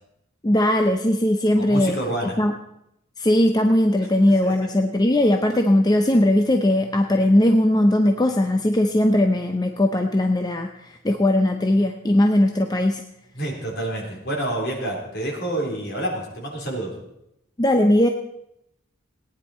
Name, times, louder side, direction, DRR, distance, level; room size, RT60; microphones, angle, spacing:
voice 1, 0.4-2.0 2.4-2.5 3.2-13.0 17.6-18.1, left 1 dB, 20° left, 5 dB, 0.6 m, -19 dB
voice 2, 1.6-2.4 4.4-4.5 13.3-16.9, right 1 dB, 55° left, -1 dB, 3.5 m, -28 dB
18.0 x 9.8 x 4.3 m, 0.82 s
head